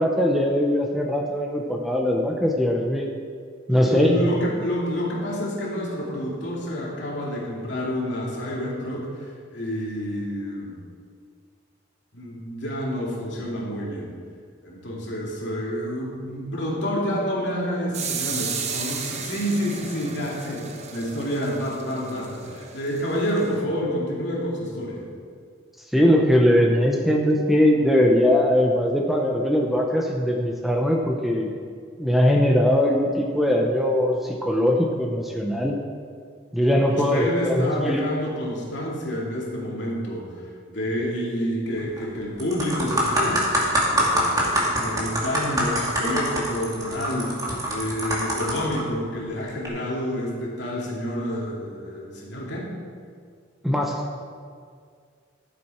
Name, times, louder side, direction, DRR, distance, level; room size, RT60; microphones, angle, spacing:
voice 1, 0.0-3.1 3.7-4.3 25.9-31.5 32.0-35.8 36.5-38.0 53.6-54.0, equal, ahead, 0 dB, 0.7 m, -21 dB
voice 2, 3.7-10.8 12.1-14.1 14.6-25.0 36.9-43.5 43.9-47.4 47.7-52.7, equal, 65° left, -4 dB, 2.6 m, -28 dB
sound 1, 17.9-23.6, right 6 dB, 35° right, 0.8 m, -34 dB
sound 2, 41.8-42.0 42.4-48.8 49.5-49.7, right 1 dB, 20° right, 2.0 m, -24 dB
14.0 x 7.8 x 4.4 m, 2.1 s
head